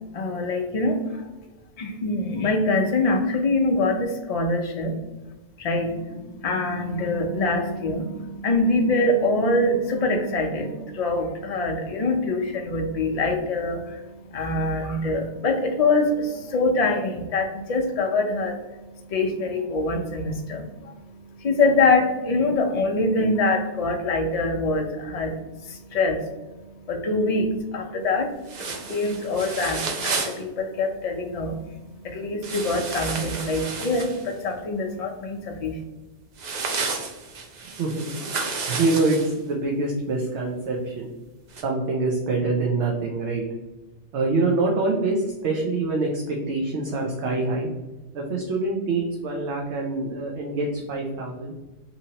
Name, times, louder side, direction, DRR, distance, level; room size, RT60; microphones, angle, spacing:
voice 1, 0.1-1.5 1.8-5.0 5.6-26.3 26.6-31.6 32.0-35.8, left 2 dB, 70° left, 3 dB, 0.3 m, -24 dB
sound 1, 28.5-30.4 32.4-34.3 36.4-39.3 41.5-41.6, right 4 dB, 55° right, 0.5 m, -31 dB
voice 2, 38.7-41.1 41.6-43.4 44.1-47.7 48.1-51.5, right 3 dB, 75° right, -1 dB, 0.9 m, -25 dB
2.8 x 2.8 x 2.7 m, 1.1 s
omnidirectional pair, 1.2 m